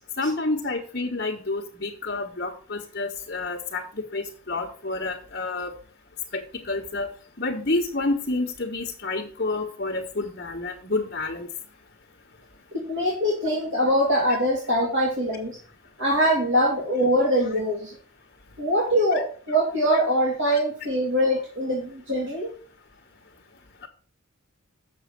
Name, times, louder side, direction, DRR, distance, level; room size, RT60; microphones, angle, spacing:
voice 1, 0.2-5.7 6.3-7.1 7.4-11.5 20.5-20.6, left 2 dB, 45° left, -4 dB, 1.3 m, -29 dB
voice 2, 12.7-15.6 16.0-17.9 18.6-22.5, equal, 60° right, -2 dB, 2.3 m, -23 dB
7.2 x 6.2 x 6.8 m, 0.43 s
head